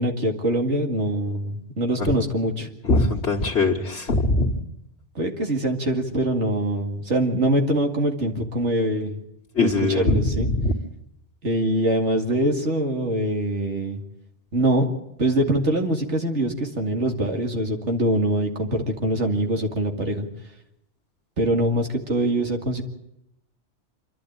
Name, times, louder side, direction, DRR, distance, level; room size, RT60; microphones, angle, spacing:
voice 1, 0.0-2.7 5.1-9.2 9.6-10.5 11.4-14.0 14.5-14.9 15.2-20.3 21.4-22.8, right 1 dB, 80° right, 2 dB, 2.5 m, -23 dB
voice 2, 2.8-4.6 9.6-10.7, left 2 dB, 65° left, -4 dB, 1.9 m, -21 dB
26.5 x 12.0 x 8.8 m, 0.83 s
omnidirectional pair, 1.2 m